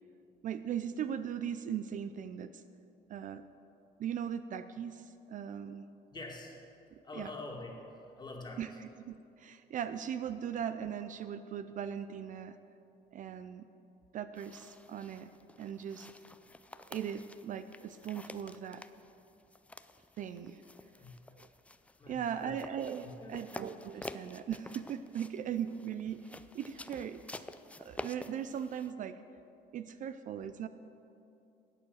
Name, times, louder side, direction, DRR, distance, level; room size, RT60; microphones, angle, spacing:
voice 1, 0.4-2.6 3.1-3.4 4.0-5.9 6.9-7.3 8.6-12.6 13.1-13.7 14.1-15.3 15.6-16.1 16.9-18.8 20.2-20.6 21.3-21.5 22.1-27.4 27.8-29.2 29.7-30.7, right 8 dB, 50° right, 11 dB, 0.4 m, -39 dB
voice 2, 6.1-6.6 7.0-7.8 8.2-8.6 20.9-21.2 22.0-22.6 23.0-23.3, left 2 dB, 25° left, 0 dB, 2.1 m, -45 dB
sound 1, 14.4-28.9, left 2 dB, 10° left, 0.4 m, -50 dB
11.5 x 8.3 x 6.4 m, 2.7 s
cardioid pair, 110°, 17 cm